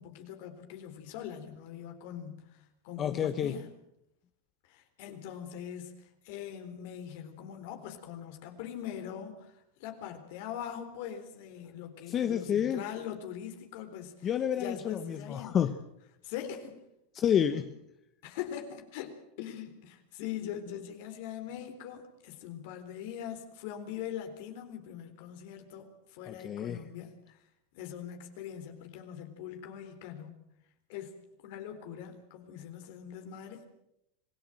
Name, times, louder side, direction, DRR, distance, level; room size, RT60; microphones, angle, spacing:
voice 1, 0.0-2.4 2.8-3.7 4.7-5.9 6.2-9.5 9.8-15.6 16.2-16.8 17.5-17.7 18.2-27.4 27.7-30.4 30.9-31.1 31.4-33.6, left 9 dB, 65° left, 6 dB, 3.9 m, -42 dB
voice 2, 3.0-3.5 12.1-12.8 14.2-15.7 17.1-17.6 26.3-26.8, left 9 dB, 30° left, 9 dB, 1.1 m, -29 dB
26.5 x 16.5 x 7.8 m, 0.83 s
supercardioid pair, 120°, 0 cm